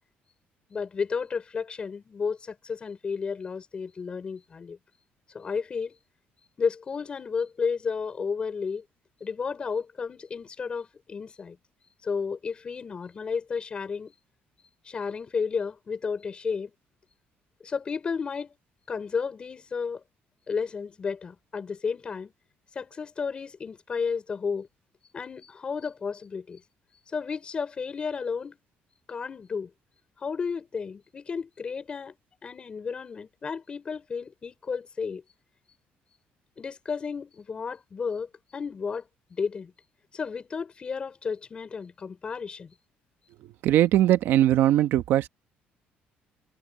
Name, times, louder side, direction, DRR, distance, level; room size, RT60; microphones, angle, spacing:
voice 1, 0.7-4.8 5.3-5.9 6.6-8.8 9.2-11.6 12.0-14.1 14.8-16.7 17.6-18.5 18.9-20.0 20.5-22.3 22.8-24.7 25.1-26.6 27.1-28.6 29.1-29.7 30.2-32.1 32.4-35.2 36.6-39.0 39.3-39.7 40.1-42.7, left 5 dB, 25° left, 5.7 m, -32 dB
voice 2, 43.6-45.3, right 12 dB, 70° right, 1.2 m, -20 dB
cardioid pair, 160°, 4 cm